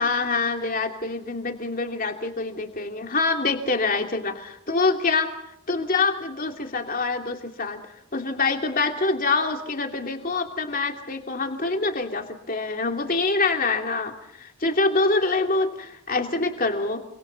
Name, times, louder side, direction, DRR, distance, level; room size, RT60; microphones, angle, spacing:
voice 1, 0.0-5.3 5.7-7.8 8.1-17.0, left 3 dB, 40° left, 4 dB, 2.9 m, -25 dB
29.0 x 26.0 x 4.1 m, 0.78 s
head